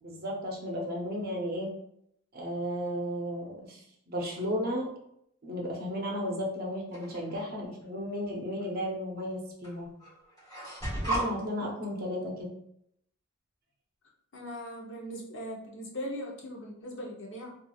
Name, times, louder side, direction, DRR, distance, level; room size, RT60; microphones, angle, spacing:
voice 1, 0.0-1.7 2.3-4.9 5.4-9.9 11.1-12.5, equal, 45° right, -1 dB, 0.6 m, -34 dB
sound 1, 6.9-7.4 8.6-8.7 9.6-9.7 10.0-11.3, right 1 dB, 15° left, 1.1 m, -34 dB
voice 2, 14.3-17.6, equal, 55° left, -1 dB, 0.6 m, -39 dB
3.0 x 2.4 x 2.3 m, 0.73 s
head